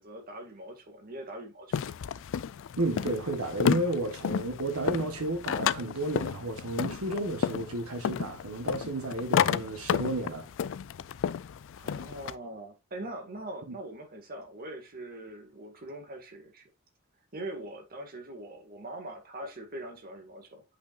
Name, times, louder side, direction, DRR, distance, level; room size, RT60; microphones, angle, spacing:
voice 1, 0.0-1.7 11.8-16.7 17.3-20.6, right 1 dB, 45° right, 1.9 m, -42 dB
sound 1, 1.7-12.3, left 7 dB, 60° left, 0.4 m, -31 dB
voice 2, 2.8-10.5 13.7-13.8, right 2 dB, 80° right, 1.5 m, -32 dB
8.4 x 5.6 x 2.5 m
head